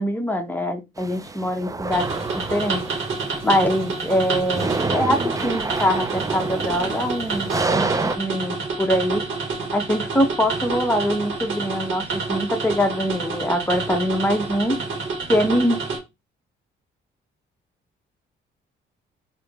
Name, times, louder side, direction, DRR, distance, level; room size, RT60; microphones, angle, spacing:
voice 1, 0.0-2.1 2.3-2.8 3.4-9.2 9.7-14.8 15.3-15.8, equal, 10° left, 4 dB, 1.2 m, -23 dB
sound 1, 1.0-8.2, right 3 dB, 15° right, 0.5 m, -28 dB
sound 2, 1.9-16.0, right 4 dB, 75° right, 2.4 m, -28 dB
4.1 x 3.6 x 3.6 m, 0.23 s
cardioid pair, 90°, 20 cm